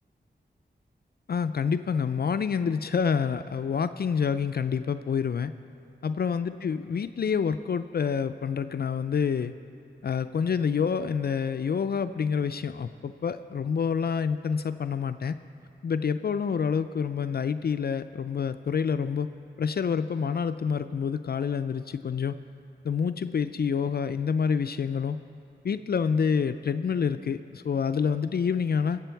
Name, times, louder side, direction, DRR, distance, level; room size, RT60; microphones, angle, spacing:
voice 1, 1.3-5.5 6.0-9.5 10.0-15.4 15.8-19.3 19.6-22.4 22.8-25.2 25.6-29.0, left 6 dB, 60° left, 11 dB, 0.4 m, -27 dB
23.5 x 8.2 x 4.5 m, 2.5 s
wide cardioid pair, 90°, 18 cm